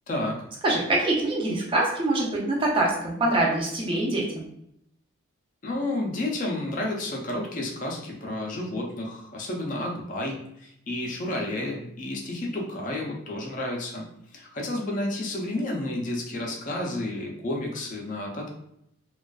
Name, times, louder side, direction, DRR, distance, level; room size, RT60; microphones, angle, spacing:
voice 1, 0.1-0.5 5.6-18.5, left 1 dB, 40° left, 0 dB, 0.4 m, -31 dB
voice 2, 0.6-4.4, right 2 dB, 25° right, -2 dB, 0.5 m, -24 dB
2.4 x 2.2 x 2.2 m, 0.75 s
head